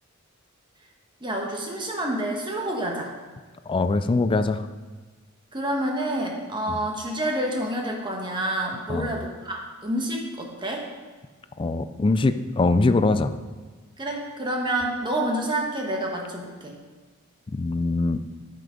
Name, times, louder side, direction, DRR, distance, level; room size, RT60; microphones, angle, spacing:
voice 1, 1.2-3.1 5.5-10.9 14.0-16.7, right 1 dB, 20° right, 0 dB, 1.3 m, -28 dB
voice 2, 3.7-4.7 6.7-6.8 8.9-9.2 11.6-13.3 17.5-18.2, left 3 dB, 25° left, 11 dB, 0.3 m, -22 dB
9.4 x 5.8 x 5.1 m, 1.4 s
head